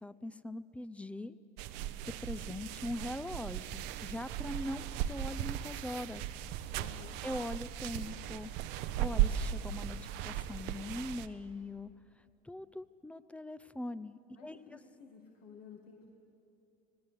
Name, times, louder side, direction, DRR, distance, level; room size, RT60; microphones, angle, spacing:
voice 1, 0.0-1.4 2.2-6.3 7.2-8.5 9.0-11.9 12.4-14.6, left 1 dB, 5° left, 14 dB, 0.6 m, -41 dB
sound 1, 1.6-11.3, right 11 dB, 70° right, 0.8 m, -37 dB
voice 2, 6.7-7.2 14.4-16.1, left 6 dB, 60° left, 0 dB, 2.1 m, -53 dB
18.5 x 18.5 x 8.2 m, 2.8 s
hypercardioid pair, 80°, 18 cm